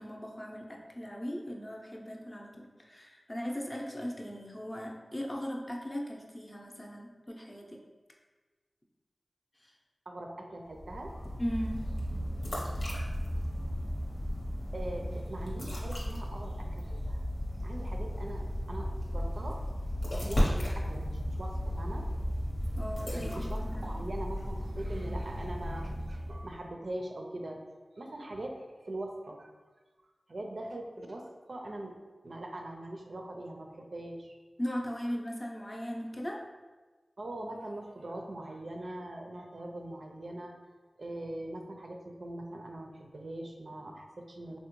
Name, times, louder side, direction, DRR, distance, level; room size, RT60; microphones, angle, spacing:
voice 1, 0.0-7.8 9.6-9.7 11.4-11.9 22.8-24.0 34.6-36.4, equal, 30° left, -1 dB, 0.5 m, -38 dB
voice 2, 10.1-11.1 14.7-17.2 17.6-19.6 20.1-22.0 23.1-27.6 28.0-29.5 30.3-31.9 32.2-34.4 37.2-40.5 41.0-44.6, right 1 dB, 65° right, 2 dB, 0.4 m, -42 dB
sound 1, 10.7-26.6, equal, 75° left, 0.8 m, -34 dB
3.3 x 2.1 x 3.0 m, 1.3 s
cardioid pair, 40°, 0 cm